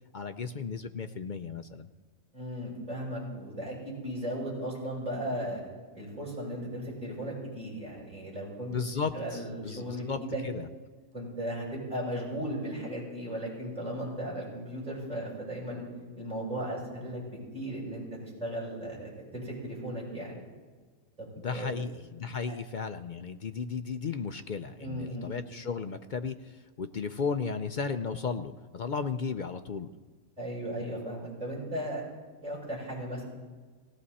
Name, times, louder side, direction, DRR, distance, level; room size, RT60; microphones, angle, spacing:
voice 1, 0.1-1.9 8.7-10.7 21.4-29.9, left 5 dB, 60° left, 9 dB, 0.5 m, -35 dB
voice 2, 2.3-5.6 5.9-8.7 9.1-10.4 11.1-15.8 16.2-17.2 17.5-20.4 21.2-21.8 22.5-22.6 24.8-25.3 30.4-32.0 32.4-33.3, right 1 dB, 25° right, -4 dB, 7.1 m, -36 dB
18.5 x 17.5 x 4.2 m, 1.4 s
omnidirectional pair, 1.5 m